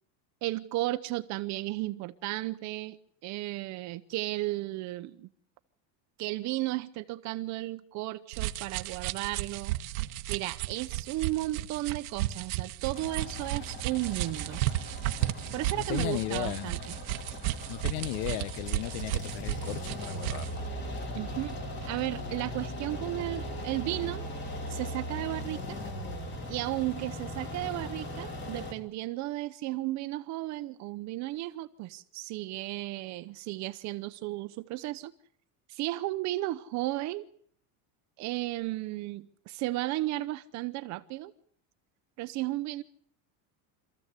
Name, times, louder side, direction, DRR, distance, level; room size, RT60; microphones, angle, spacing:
voice 1, 0.4-3.0 3.2-5.3 6.2-9.7 10.3-14.6 15.5-16.8 21.1-24.2 24.7-25.8 26.5-35.1 35.7-37.2 38.2-41.3 42.2-42.8, right 17 dB, 40° right, 0.9 m, -34 dB
sound 1, 8.3-20.5, right 16 dB, 85° right, 1.2 m, -34 dB
sound 2, 12.9-28.7, equal, 25° left, 2.7 m, -39 dB
voice 2, 15.7-16.7 17.7-20.6, left 15 dB, 60° left, 1.0 m, -35 dB
26.5 x 14.5 x 8.2 m
cardioid pair, 170°, 41 cm